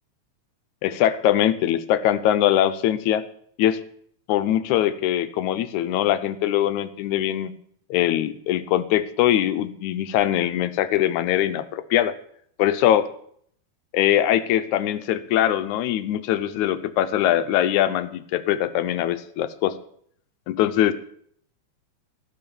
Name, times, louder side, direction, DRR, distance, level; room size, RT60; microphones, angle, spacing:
voice 1, 0.8-3.2 3.6-3.8 4.3-7.5 7.9-12.1 12.6-13.1 13.9-19.7 20.5-20.9, left 12 dB, 80° left, 12 dB, 2.1 m, -22 dB
16.5 x 5.7 x 6.9 m, 0.65 s
omnidirectional pair, 3.4 m